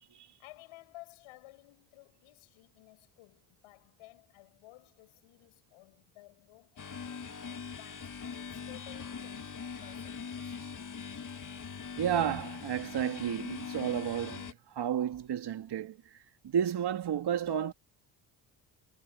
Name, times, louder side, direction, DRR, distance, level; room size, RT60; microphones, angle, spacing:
voice 1, 0.4-7.3 7.7-10.6, left 20 dB, 80° left, 7.5 m, -55 dB
sound 1, 6.8-14.5, left 6 dB, 40° left, 3.3 m, -42 dB
voice 2, 12.0-16.0 16.4-17.7, right 9 dB, 55° right, 2.6 m, -32 dB
supercardioid pair, 65°, 49 cm